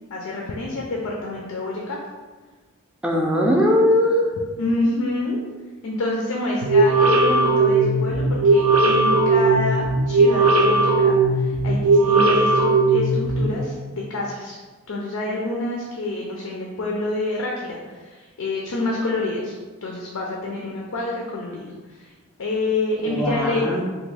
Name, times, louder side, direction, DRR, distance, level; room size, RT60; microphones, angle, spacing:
voice 1, 0.1-2.0 4.6-5.4 5.8-14.6 14.9-19.5 19.8-22.1 22.4-23.8, left 2 dB, 85° left, -2 dB, 0.5 m, -27 dB
voice 2, 3.0-4.3 23.0-23.8, left 1 dB, 5° right, -1 dB, 0.3 m, -19 dB
sound 1, 6.6-13.5, right 3 dB, 75° right, 0.5 m, -18 dB
3.3 x 2.2 x 3.2 m, 1.3 s
head